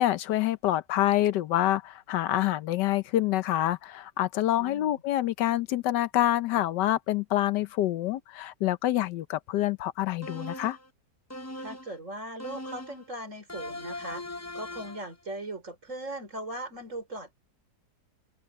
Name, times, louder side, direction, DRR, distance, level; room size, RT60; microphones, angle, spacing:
voice 1, 0.0-10.8, left 13 dB, 85° left, 1.4 m, -27 dB
voice 2, 4.6-5.0 11.6-14.2 14.5-17.3, right 1 dB, 45° right, 5.7 m, -39 dB
sound 1, 10.2-10.9 11.3-12.0 12.4-13.1 13.5-15.1, left 1 dB, 20° left, 0.4 m, -40 dB
omnidirectional pair, 1.8 m